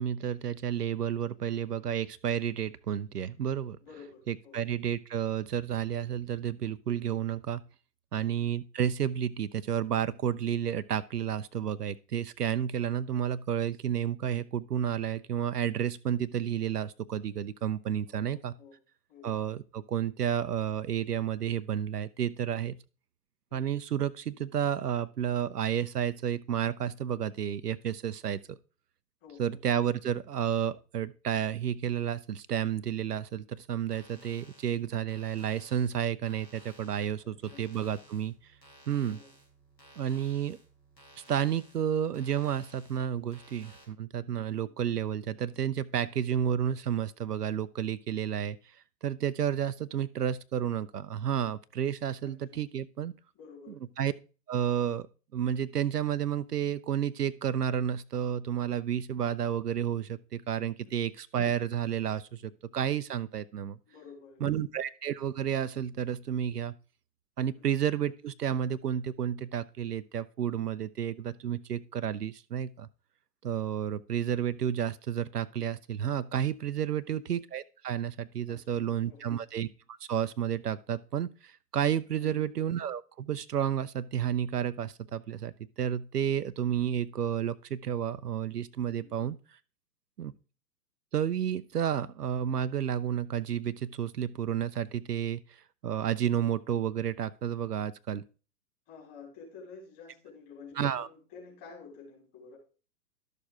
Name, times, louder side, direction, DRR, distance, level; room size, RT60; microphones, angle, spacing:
voice 1, 0.0-3.8 4.3-7.6 8.1-18.5 19.2-22.7 23.5-28.6 29.4-38.5 38.9-39.2 40.0-40.6 41.3-53.1 53.7-54.1 54.5-55.1 55.3-63.8 64.4-66.7 67.4-72.9 73.4-85.5 85.8-89.4 90.2-90.3 91.1-98.3 100.8-101.1, right 9 dB, 70° right, 0.6 m, -31 dB
voice 2, 3.8-4.7 8.2-8.5 18.1-18.8 19.1-19.3 23.5-23.6 29.2-29.6 37.2-37.7 39.0-39.3 52.2-52.6 53.3-53.8 60.8-60.9 63.9-64.6 67.5-67.6 76.9-77.2 78.5-79.4 82.2-82.4 89.0-89.3 98.9-102.6, left 5 dB, 30° left, 4.3 m, -51 dB
sound 1, 33.8-43.8, right 1 dB, 90° left, 5.0 m, -57 dB
12.0 x 6.6 x 3.6 m
figure-of-eight pair, 115°, 49 cm